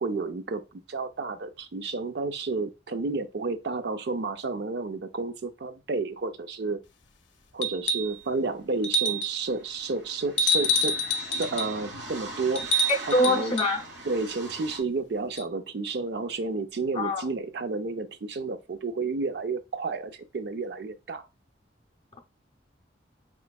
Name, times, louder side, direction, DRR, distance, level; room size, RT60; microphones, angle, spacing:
voice 1, 0.0-6.8 7.5-11.0 11.4-12.6 13.1-13.5 14.1-21.2, right 3 dB, 65° right, 0.5 m, -31 dB
sound 1, 7.6-8.2 8.8-9.4 10.4-11.8 12.6-13.8 15.4-15.5, equal, 85° left, 0.5 m, -27 dB
sound 2, 8.3-8.4 8.6-14.8, right 2 dB, 85° right, 1.1 m, -41 dB
voice 2, 13.1-13.8 16.9-17.2, left 1 dB, 35° left, 0.6 m, -24 dB
4.2 x 3.1 x 2.3 m
head